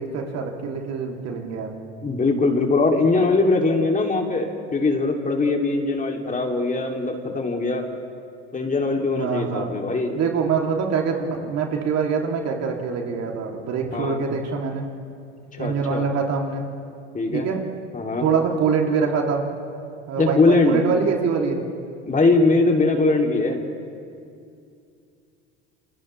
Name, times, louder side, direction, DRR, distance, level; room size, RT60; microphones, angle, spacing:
voice 1, 0.0-1.7 9.2-9.7 10.1-14.9 15.6-16.7 17.3-17.6 18.2-19.4 20.1-21.6, right 5 dB, 50° right, 1 dB, 2.8 m, -24 dB
voice 2, 2.0-7.9 8.5-10.2 13.9-14.2 15.5-16.1 17.1-17.5 17.9-18.3 20.2-20.8 22.0-23.6, left 3 dB, 25° left, 2 dB, 2.8 m, -21 dB
28.5 x 28.0 x 3.3 m, 2.4 s
hypercardioid pair, 75°, 34 cm